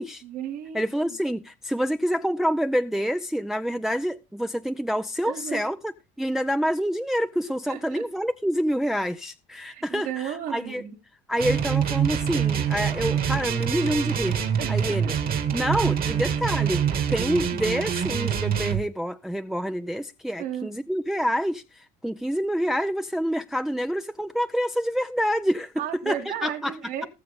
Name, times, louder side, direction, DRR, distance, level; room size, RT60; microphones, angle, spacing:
voice 1, 0.2-1.2 5.2-5.7 7.7-8.0 9.7-10.9 14.6-15.1 20.4-20.7 25.8-27.1, right 10 dB, 80° right, 4.3 m, -34 dB
voice 2, 0.7-5.9 6.2-10.8 11.3-14.4 14.7-15.1 15.5-16.8 17.1-25.7 26.1-26.7, equal, ahead, 0.5 m, -27 dB
sound 1, 11.4-18.8, right 8 dB, 45° right, 2.0 m, -25 dB
19.5 x 6.7 x 3.6 m
supercardioid pair, 95°, 21 cm